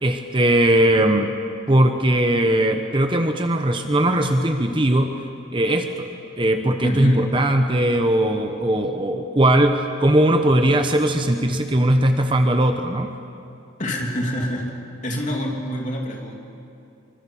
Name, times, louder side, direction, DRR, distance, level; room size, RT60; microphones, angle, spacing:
voice 1, 0.0-1.3 1.7-5.1 5.5-6.1 6.4-13.1, right 1 dB, 25° right, 6 dB, 1.0 m, -19 dB
voice 2, 6.8-7.3 13.8-14.7 15.0-16.4, equal, 35° left, 0 dB, 3.0 m, -26 dB
25.0 x 25.0 x 7.1 m, 2.7 s
head